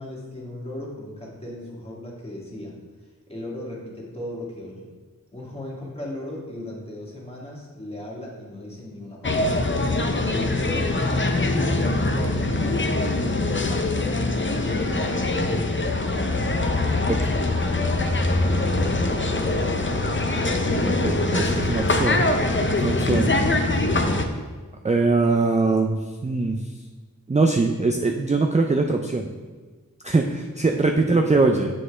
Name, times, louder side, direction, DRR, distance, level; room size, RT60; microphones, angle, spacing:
voice 1, 0.0-2.7 3.3-4.9 5.3-9.7 10.2-15.0 18.2-19.7 20.6-21.0 31.0-31.5, left 1 dB, 15° left, -4 dB, 1.8 m, -36 dB
sound 1, 9.2-24.3, left 2 dB, 35° left, 0.6 m, -23 dB
voice 2, 17.1-17.4 21.0-22.3 22.7-23.3 23.7-23.8 24.8-26.7 27.3-29.3 30.0-31.7, right 3 dB, 20° right, 3 dB, 0.4 m, -22 dB
7.4 x 5.8 x 3.3 m, 1.4 s
wide cardioid pair, 45°, 35 cm